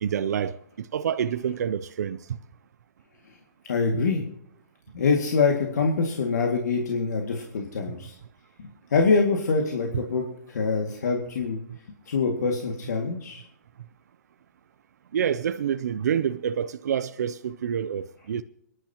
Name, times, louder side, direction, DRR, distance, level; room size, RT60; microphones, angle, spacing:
voice 1, 0.0-2.2 3.9-4.0 15.1-18.4, right 8 dB, 70° right, 0.6 m, -27 dB
voice 2, 3.6-4.2 4.9-8.2 8.6-11.6 12.1-13.4, left 4 dB, 75° left, 2.2 m, -25 dB
23.5 x 11.0 x 3.0 m
hypercardioid pair, 150°, 9 cm